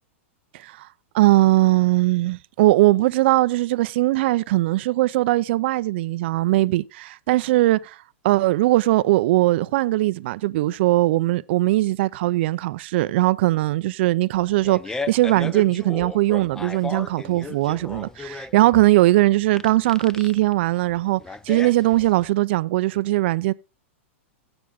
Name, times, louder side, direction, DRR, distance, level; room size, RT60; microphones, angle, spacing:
voice 1, 0.5-0.9 1.1-8.0 8.2-21.2 21.5-23.5, right 17 dB, 55° right, 0.5 m, -20 dB
Fart, 14.3-22.3, left 3 dB, 10° left, 0.5 m, -35 dB
15.5 x 6.1 x 3.5 m
hypercardioid pair, 135°, 7 cm